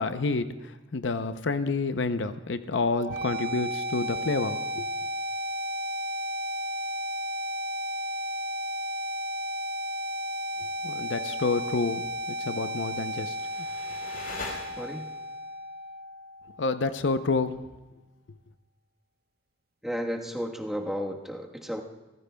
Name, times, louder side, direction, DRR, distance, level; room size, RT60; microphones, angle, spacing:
voice 1, 0.0-4.9 10.8-13.4 16.6-17.6, left 3 dB, 75° left, 10 dB, 0.7 m, -29 dB
sound 1, 2.9-16.9, equal, 55° right, 0.8 m, -34 dB
sound 2, 12.9-15.3, left 3 dB, 55° left, 5.0 m, -41 dB
voice 2, 14.8-15.1 19.8-21.8, equal, ahead, 0 dB, 1.3 m, -33 dB
28.5 x 15.0 x 2.3 m, 1.1 s
head